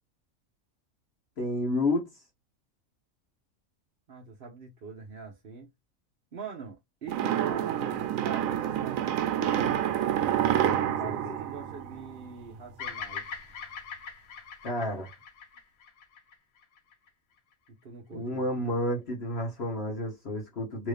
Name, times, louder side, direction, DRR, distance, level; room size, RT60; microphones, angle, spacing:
voice 1, 1.4-2.1 11.0-11.3 14.6-15.1 18.1-20.9, left 1 dB, 55° left, 1.2 m, -30 dB
voice 2, 4.1-5.7 6.3-9.9 10.6-13.3 17.7-18.8, right 5 dB, 50° right, 1.0 m, -43 dB
sound 1, 7.1-12.4, right 10 dB, 90° right, 1.0 m, -28 dB
Bird vocalization bird call bird song, 12.8-17.1, left 6 dB, 85° left, 1.3 m, -41 dB
3.1 x 2.5 x 3.3 m
omnidirectional pair, 1.4 m